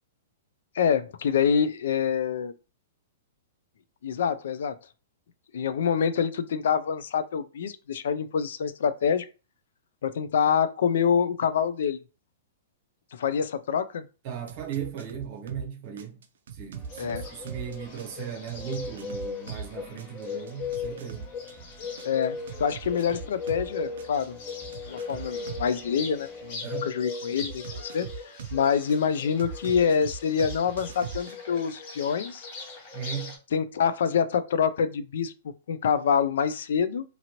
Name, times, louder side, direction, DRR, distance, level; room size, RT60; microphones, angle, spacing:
voice 1, 0.7-2.5 4.0-4.7 5.5-9.3 10.0-12.0 13.1-14.1 17.0-17.2 22.0-24.4 24.9-28.1 28.5-32.5 33.5-37.0, left 7 dB, 65° left, 0.3 m, -26 dB
voice 2, 14.2-16.2 16.5-21.3 26.6-27.0 32.9-33.4, right 8 dB, 35° right, 0.7 m, -37 dB
sound 1, 14.5-15.7 16.0-19.7 20.0-23.7 24.0-25.7 27.4-29.0 29.4-31.3, right 6 dB, 75° right, 0.5 m, -40 dB
sound 2, 16.7-26.5, right 2 dB, 15° left, 1.3 m, -51 dB
Bird, 16.9-33.4, left 5 dB, 40° left, 0.8 m, -39 dB
2.8 x 2.6 x 2.8 m
hypercardioid pair, 170°, 0 cm